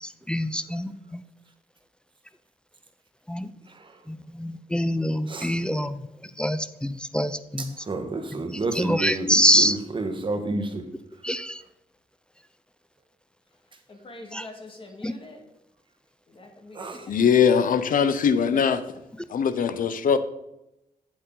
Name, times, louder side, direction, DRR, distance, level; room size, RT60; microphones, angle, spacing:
voice 1, 0.0-1.2 3.3-3.5 4.1-6.0 6.4-7.7 8.7-9.8 11.2-11.6 14.3-14.5 15.0-15.1, equal, 5° left, 0.4 m, -25 dB
voice 2, 7.9-10.8 16.8-16.9, right 2 dB, 35° right, 1.4 m, -29 dB
voice 3, 13.9-15.4 16.3-17.1, left 2 dB, 35° left, 1.9 m, -44 dB
voice 4, 17.1-18.8 19.3-20.2, left 7 dB, 65° left, 0.7 m, -21 dB
8.7 x 8.2 x 3.8 m
wide cardioid pair, 120°, 15 cm